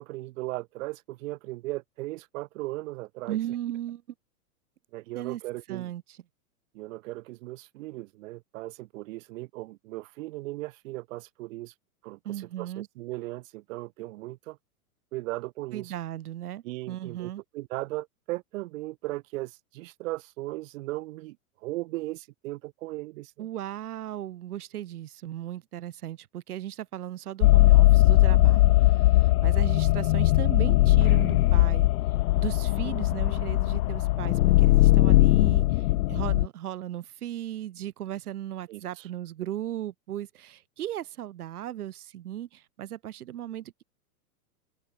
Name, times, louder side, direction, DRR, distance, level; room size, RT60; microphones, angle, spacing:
voice 1, 0.0-3.4 4.9-5.9 6.7-11.7 12.0-14.6 15.1-15.9 16.6-21.4 21.6-23.5 38.7-39.1, right 19 dB, 55° right, 4.7 m, -37 dB
voice 2, 3.3-4.0 5.2-5.4 5.7-6.0 12.3-12.9 15.7-17.4 23.4-31.9 32.4-43.8, right 12 dB, 75° right, 5.1 m, -36 dB
sound 1, 27.4-36.5, left 17 dB, 70° left, 0.7 m, -20 dB
hypercardioid pair, 135°, 45 cm